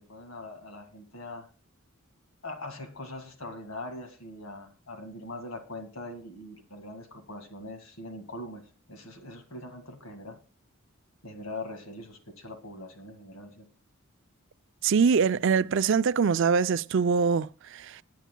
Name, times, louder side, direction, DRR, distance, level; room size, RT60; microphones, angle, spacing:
voice 1, 0.0-1.5 2.4-10.4 11.2-13.7, left 2 dB, 70° left, 2.0 m, -42 dB
voice 2, 14.8-18.0, right 6 dB, 60° right, 0.4 m, -24 dB
21.5 x 9.2 x 2.2 m
head